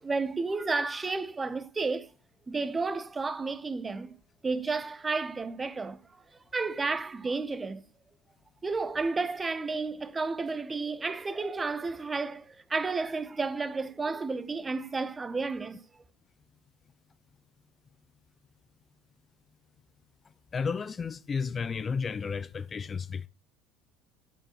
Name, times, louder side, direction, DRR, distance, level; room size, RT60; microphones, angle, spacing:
voice 1, 0.0-2.1 2.5-4.1 4.4-6.0 6.5-7.8 8.6-15.8, right 3 dB, 20° right, 0.8 m, -32 dB
voice 2, 20.5-23.3, left 5 dB, 30° left, 0.4 m, -32 dB
8.7 x 8.6 x 3.0 m
figure-of-eight pair, 65°, 0 cm